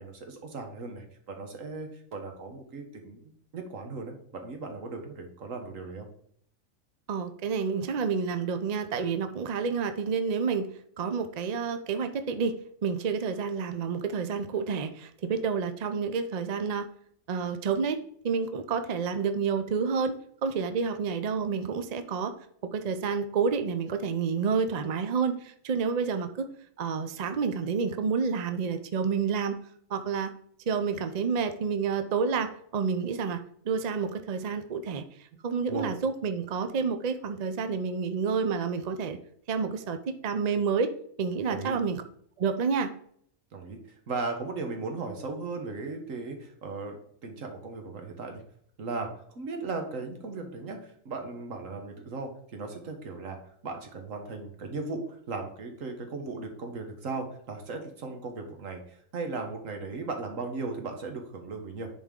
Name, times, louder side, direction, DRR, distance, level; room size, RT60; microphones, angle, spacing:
voice 1, 0.0-6.1 35.7-35.9 41.5-41.7 43.5-43.8 44.1-48.4 48.8-53.4 53.6-61.9, right 3 dB, 75° right, 4 dB, 1.6 m, -37 dB
voice 2, 7.1-12.5 12.8-16.9 17.3-18.0 18.2-20.2 20.4-22.3 22.6-26.5 26.8-29.6 29.9-30.3 30.7-33.4 33.6-39.2 39.5-40.9 41.2-42.0 42.4-42.9, right 5 dB, 50° right, 8 dB, 0.5 m, -29 dB
10.5 x 4.3 x 3.7 m, 0.65 s
omnidirectional pair, 1.4 m